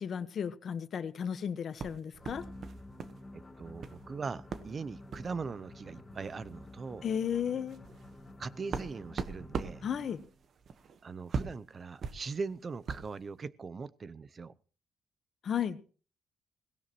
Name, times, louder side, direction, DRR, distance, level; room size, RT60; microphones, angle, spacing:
voice 1, 0.0-2.4 7.0-7.8 9.8-10.2 15.4-15.8, left 8 dB, 55° left, 1.2 m, -34 dB
sound 1, 1.8-3.2 3.5-4.0 4.5-4.7 5.1-5.3 6.2-6.3 6.7-6.8 7.3-13.2, right 5 dB, 55° right, 1.2 m, -40 dB
sound 2, 2.1-4.0, right 2 dB, 75° right, 7.5 m, -59 dB
sound 3, 2.2-10.4, left 1 dB, 20° left, 2.2 m, -51 dB
voice 2, 3.3-7.0 8.4-9.8 11.0-14.5, right 4 dB, 40° right, 0.7 m, -40 dB
18.0 x 16.5 x 3.0 m
cardioid pair, 90°, 0 cm